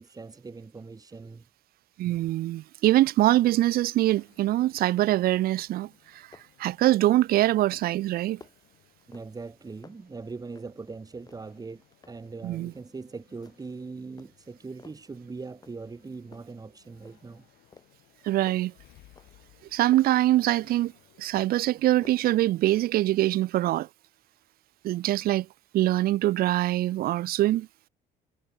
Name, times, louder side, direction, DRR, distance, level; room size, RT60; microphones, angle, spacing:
voice 1, 0.0-1.4 9.1-17.5, right 4 dB, 20° right, 2.6 m, -41 dB
voice 2, 2.0-6.3 6.6-8.4 12.4-12.7 18.2-18.7 19.7-20.9 21.2-23.9 24.8-25.5 25.7-27.7, right 15 dB, 65° right, 0.5 m, -23 dB
sound 1, 4.0-22.0, left 18 dB, 85° left, 4.2 m, -63 dB
sound 2, 4.8-5.2 5.5-5.9 6.2-6.7 7.0-7.3 7.7-9.5 9.8-10.9 11.2-12.3 12.7-13.0 13.4-13.8 14.2-15.1 15.6-16.0 16.3-17.4 17.7-20.2 20.6-21.7 22.0-23.1, left 4 dB, 25° left, 2.6 m, -55 dB
cardioid pair, 110°, 17 cm